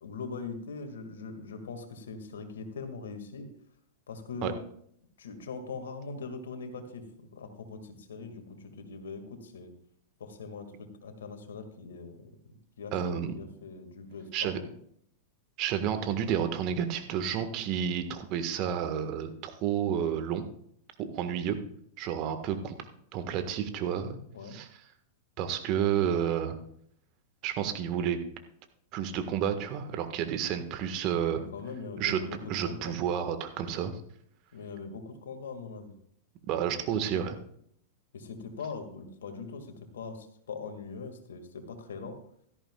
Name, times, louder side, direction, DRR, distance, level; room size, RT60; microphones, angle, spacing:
voice 1, 0.0-3.5 4.1-4.6 5.2-9.7 10.2-14.7 23.3-23.4 24.3-24.6 31.3-33.0 34.5-35.9 38.1-42.2, left 4 dB, 75° left, 6 dB, 2.1 m, -41 dB
voice 2, 12.9-13.3 14.3-14.6 15.6-20.4 21.0-21.6 22.0-22.8 23.1-24.2 24.5-24.7 25.4-26.6 27.4-28.2 28.9-31.4 32.0-32.2 32.5-34.0 36.5-37.4, right 9 dB, 45° right, 8 dB, 1.6 m, -30 dB
16.5 x 13.5 x 2.4 m, 0.67 s
hypercardioid pair, 100°, 0 cm